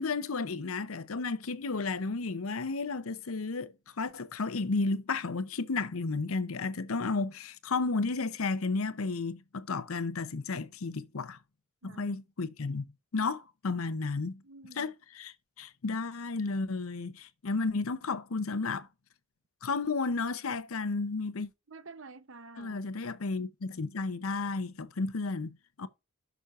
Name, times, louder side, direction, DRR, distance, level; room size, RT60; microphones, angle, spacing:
voice 1, 0.0-11.4 11.8-14.4 14.7-18.9 19.6-21.5 22.6-25.9, left 3 dB, 80° left, 0.7 m, -33 dB
voice 2, 11.8-12.1 14.4-14.9 21.7-22.8, right 3 dB, 60° right, 0.8 m, -49 dB
11.0 x 6.2 x 2.5 m
head